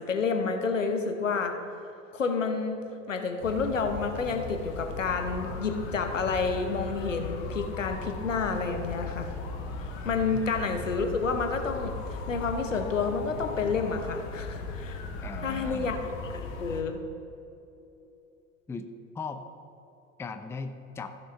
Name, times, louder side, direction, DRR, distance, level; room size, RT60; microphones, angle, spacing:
voice 1, 0.0-1.6 2.1-2.8 3.1-9.3 10.0-15.0 15.4-17.0, left 4 dB, 85° left, 6 dB, 1.0 m, -29 dB
sound 1, 3.4-16.8, left 3 dB, 50° left, 1.3 m, -37 dB
voice 2, 15.2-15.9 18.7-18.9 19.1-19.5 20.2-21.1, left 4 dB, 5° left, 8 dB, 0.5 m, -38 dB
15.0 x 6.6 x 3.4 m, 2.9 s
figure-of-eight pair, 75°, 37 cm